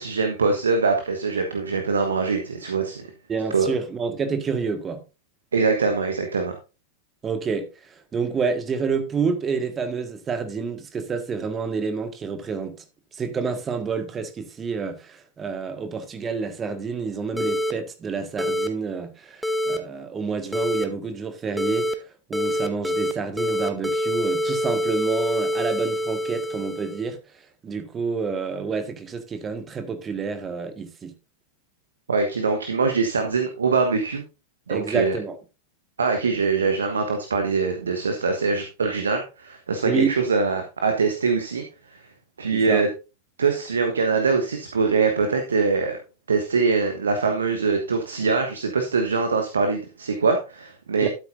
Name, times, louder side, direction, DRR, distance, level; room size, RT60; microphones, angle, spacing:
voice 1, 0.0-3.0 3.5-3.7 5.5-6.6 32.1-34.2 34.7-35.2 36.0-42.0 42.4-42.9 43.4-46.0 46.3-51.1, right 4 dB, 70° right, 1.3 m, -23 dB
voice 2, 3.3-5.0 7.2-12.8 13.1-27.2 27.6-31.1 34.7-35.3 39.8-40.2 42.5-42.8 51.0-51.1, right 5 dB, 20° right, 1.7 m, -28 dB
sound 1, 17.4-17.7 18.4-18.7 19.4-19.8 20.5-20.8 21.6-21.9 22.3-23.1 23.4-27.1, equal, ahead, 1.0 m, -25 dB
13.0 x 8.1 x 2.6 m
figure-of-eight pair, 90°, 0 cm